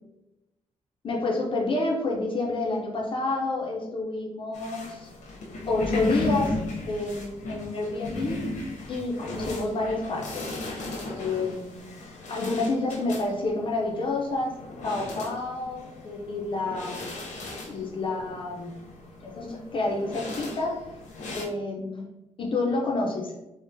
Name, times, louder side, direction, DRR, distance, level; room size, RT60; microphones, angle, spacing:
voice 1, 1.0-5.1 5.7-6.6 6.9-8.4 8.9-10.5 11.1-11.9 12.3-14.6 14.8-17.1 17.7-18.8 19.2-20.9 21.3-23.3, left 2 dB, 45° left, -2 dB, 0.4 m, -29 dB
sound 1, 4.5-21.4, left 2 dB, 85° left, 0.7 m, -36 dB
3.6 x 2.0 x 2.5 m, 0.96 s
wide cardioid pair, 145°, 12 cm